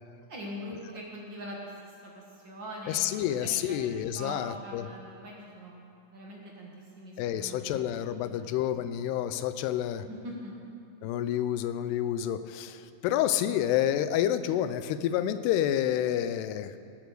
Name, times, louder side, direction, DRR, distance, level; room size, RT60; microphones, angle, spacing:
voice 1, 0.3-5.7 6.1-7.8 8.2-8.9 10.1-10.5, equal, 55° right, -3 dB, 1.2 m, -43 dB
voice 2, 2.9-4.9 7.2-10.1 11.0-16.8, left 11 dB, 85° left, 12 dB, 2.6 m, -29 dB
17.5 x 8.4 x 6.6 m, 2.5 s
omnidirectional pair, 4.7 m